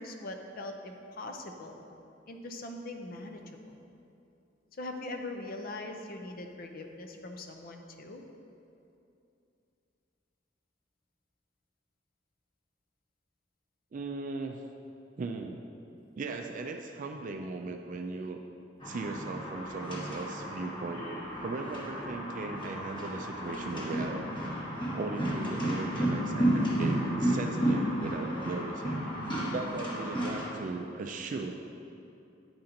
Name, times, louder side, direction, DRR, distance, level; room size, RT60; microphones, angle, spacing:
voice 1, 0.0-1.8 2.3-3.8 4.8-8.2, left 2 dB, 50° left, 4 dB, 0.6 m, -41 dB
voice 2, 13.9-14.6 15.2-15.7 16.1-18.4 18.8-21.1 21.4-24.3 24.9-29.0 29.5-31.5, right 3 dB, 45° right, 4 dB, 0.4 m, -38 dB
sound 1, 18.8-30.5, right 1 dB, 25° left, 1.2 m, -32 dB
9.5 x 4.3 x 3.8 m, 2.7 s
head